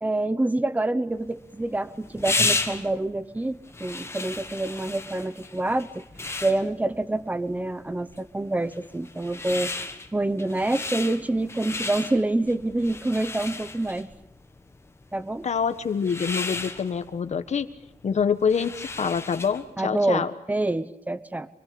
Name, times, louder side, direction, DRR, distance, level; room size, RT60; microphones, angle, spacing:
voice 1, 0.0-6.0 6.4-9.7 10.1-14.1 15.1-15.5 19.8-21.5, right 2 dB, 10° right, 13 dB, 1.0 m, -27 dB
sound 1, 1.2-19.7, left 3 dB, 20° left, 1.6 m, -34 dB
voice 2, 15.4-17.7 18.0-20.3, left 6 dB, 55° left, 10 dB, 1.4 m, -26 dB
27.0 x 21.5 x 8.7 m, 0.82 s
wide cardioid pair, 170°, 14 cm